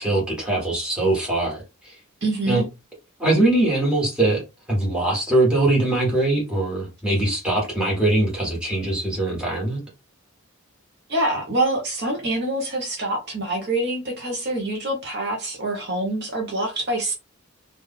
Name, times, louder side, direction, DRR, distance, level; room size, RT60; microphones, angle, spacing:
voice 1, 0.0-1.9 2.5-2.6 3.2-4.4 4.7-9.8, right 2 dB, 5° right, 1.5 m, -22 dB
voice 2, 2.2-2.7 11.1-17.1, right 1 dB, 50° right, 1.0 m, -25 dB
3.2 x 2.6 x 3.7 m
head